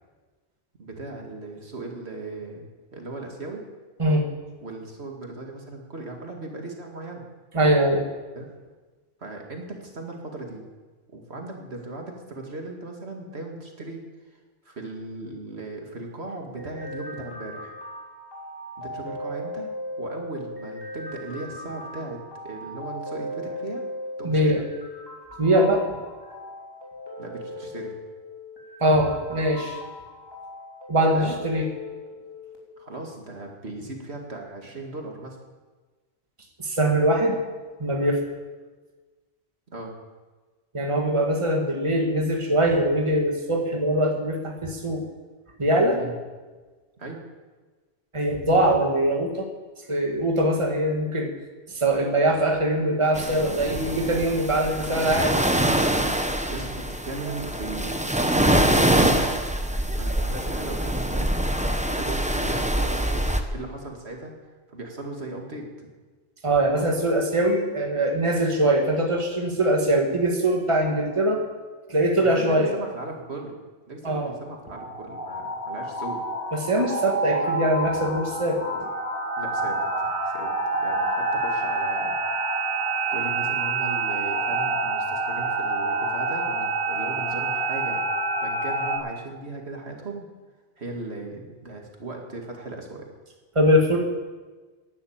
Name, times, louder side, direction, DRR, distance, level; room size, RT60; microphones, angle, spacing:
voice 1, 0.8-3.7 4.6-7.2 8.4-8.5 9.2-10.6 11.1-14.0 14.3-17.7 18.8-19.7 20.0-23.8 24.2-24.5 27.2-27.9 31.1-31.4 32.8-35.4 39.7-39.9 46.0-46.1 47.0-47.2 56.5-59.4 59.9-61.3 61.6-64.3 64.7-65.9 72.2-73.6 73.9-76.2 79.4-80.5 80.8-82.2 83.1-88.0 88.4-90.3 90.8-93.1, right 2 dB, 75° right, 1 dB, 2.4 m, -37 dB
voice 2, 7.5-8.0 24.2-24.6 25.4-26.0 28.8-29.8 30.9-31.6 36.6-37.4 37.8-38.2 40.7-45.0 45.6-46.0 48.1-49.5 49.9-51.3 51.7-55.4 66.4-71.4 71.9-72.7 74.0-74.3 76.5-78.9 93.6-94.0, right 1 dB, 30° right, 2 dB, 1.8 m, -22 dB
sound 1, 16.6-32.6, left 1 dB, 20° left, 3.4 m, -38 dB
sound 2, 53.1-63.4, right 1 dB, 5° right, 0.9 m, -24 dB
sound 3, 74.7-89.0, right 2 dB, 55° left, 3.9 m, -27 dB
11.5 x 11.0 x 8.8 m, 1.3 s
omnidirectional pair, 1.1 m